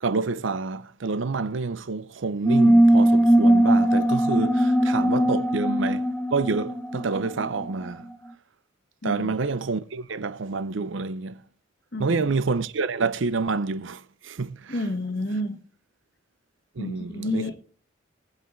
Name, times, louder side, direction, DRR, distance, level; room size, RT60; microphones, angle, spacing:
voice 1, 0.0-6.0 6.3-8.1 9.0-11.4 12.0-14.8 16.8-17.5, right 4 dB, 75° right, 0.6 m, -28 dB
sound 1, 2.4-7.7, right 1 dB, 10° left, 0.7 m, -19 dB
voice 2, 9.0-9.3 11.9-12.2 14.7-15.6 16.8-17.6, left 1 dB, 55° left, 1.4 m, -30 dB
19.0 x 8.1 x 3.2 m
head